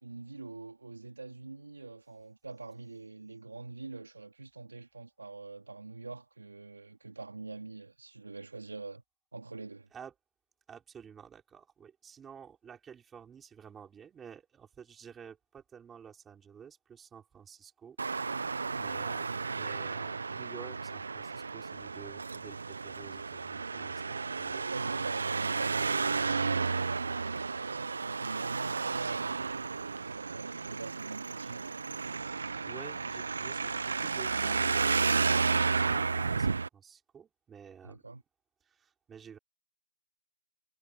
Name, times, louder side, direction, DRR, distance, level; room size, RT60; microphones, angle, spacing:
voice 1, 0.0-9.0 9.3-9.9 18.7-19.1 24.1-24.4 24.7-29.4 30.1-31.8 37.8-38.2, right 3 dB, 90° right, 3.1 m, -44 dB
voice 2, 10.7-18.4 18.7-24.8 31.4-31.6 32.6-35.0 35.2-38.2 38.6-39.4, right 7 dB, 5° right, 6.2 m, -51 dB
Traffic noise roadway noise, 18.0-36.7, right 4 dB, 60° right, 1.1 m, -32 dB
hypercardioid pair, 170°, 0 cm